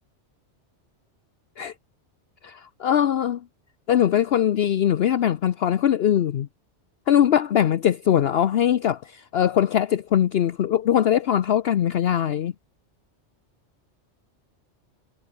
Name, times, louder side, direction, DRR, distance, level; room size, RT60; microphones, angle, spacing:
voice 1, 2.4-3.4 3.9-6.5 7.1-12.5, left 10 dB, 60° left, 0.9 m, -21 dB
omnidirectional pair, 1.2 m